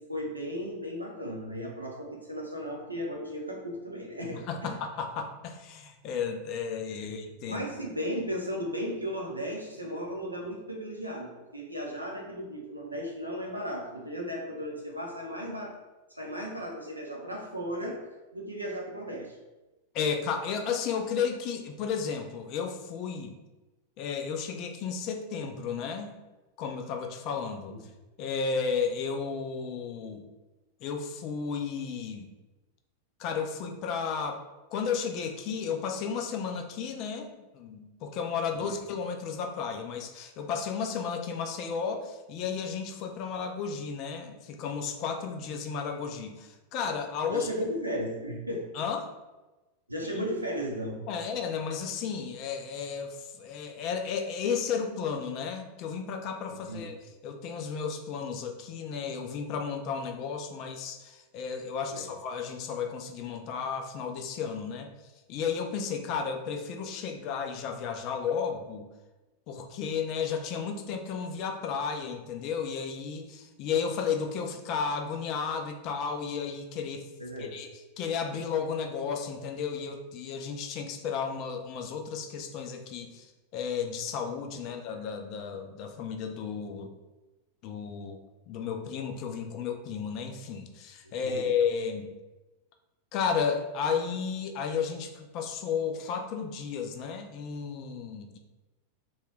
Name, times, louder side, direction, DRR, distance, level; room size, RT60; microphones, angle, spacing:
voice 1, 0.1-4.4 7.0-7.1 7.5-15.8 16.1-18.0 18.3-19.4 27.7-27.8 38.6-38.8 47.3-48.6 49.9-51.0 56.5-56.9 61.9-62.0 77.2-77.5 84.7-85.0 91.2-91.5, equal, 85° right, 0 dB, 0.6 m, -35 dB
voice 2, 4.5-7.6 19.9-23.3 24.0-26.1 26.6-27.7 28.2-30.2 30.8-32.3 33.2-34.4 34.7-47.5 48.7-49.1 50.1-50.2 51.1-57.0 57.2-64.9 65.3-68.9 69.5-77.1 77.4-77.7 78.0-83.3 83.5-86.9 87.6-88.2 88.5-92.1 93.1-98.4, left 6 dB, 40° left, 5 dB, 0.4 m, -33 dB
2.7 x 2.3 x 3.2 m, 1.1 s
figure-of-eight pair, 90°, 0 cm